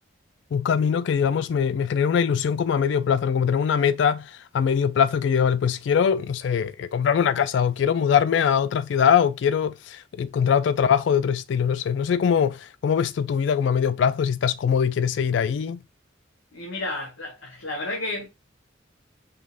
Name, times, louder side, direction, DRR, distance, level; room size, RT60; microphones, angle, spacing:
voice 1, 0.5-15.8, left 7 dB, 65° left, 0.3 m, -22 dB
voice 2, 16.5-18.3, left 2 dB, 85° left, 1.3 m, -31 dB
5.5 x 2.4 x 3.4 m
head